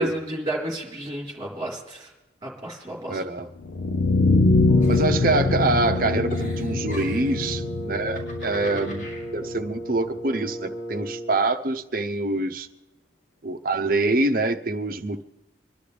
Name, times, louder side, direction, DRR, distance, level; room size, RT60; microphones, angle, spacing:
voice 1, 0.0-2.1 2.4-3.2, right 1 dB, 20° right, -2 dB, 3.8 m, -31 dB
voice 2, 3.1-3.5 4.9-12.7 13.4-15.2, right 2 dB, 50° right, 8 dB, 0.8 m, -25 dB
sound 1, 3.6-9.6, left 3 dB, 85° left, 0.7 m, -23 dB
Wind instrument woodwind instrument, 4.7-11.4, equal, 30° left, 2.7 m, -35 dB
Giggle, 4.8-5.6 5.9-7.4 7.9-9.2, left 1 dB, 55° left, 6.6 m, -42 dB
24.5 x 12.0 x 3.4 m, 0.99 s
head